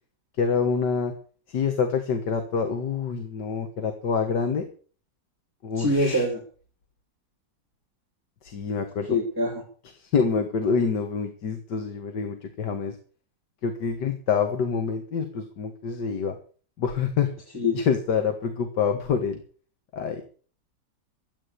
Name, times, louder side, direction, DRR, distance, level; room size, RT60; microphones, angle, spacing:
voice 1, 0.4-1.1 1.5-4.7 5.6-6.3 8.4-9.1 10.0-13.0 13.6-16.4 16.8-17.3 17.7-19.4 19.9-20.2, left 6 dB, 70° left, 6 dB, 2.1 m, -26 dB
voice 2, 5.7-6.4 9.0-9.6 17.5-17.8, left 1 dB, 10° right, 0 dB, 3.3 m, -24 dB
13.0 x 8.8 x 8.2 m, 0.43 s
omnidirectional pair, 1.9 m